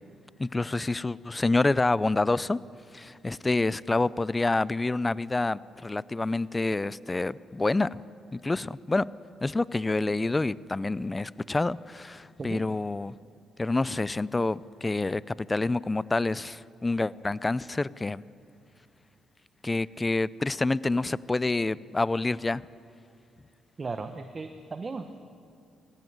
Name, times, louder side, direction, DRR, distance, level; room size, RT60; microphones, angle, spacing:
voice 1, 0.4-2.6 2.9-8.0 8.3-9.1 9.4-13.1 13.6-18.2 19.6-22.6, left 2 dB, 20° left, 20 dB, 0.4 m, -27 dB
voice 2, 23.8-25.2, right 4 dB, 30° right, 8 dB, 1.1 m, -36 dB
21.5 x 16.0 x 9.5 m, 2.4 s
cardioid pair, 90°, 0 cm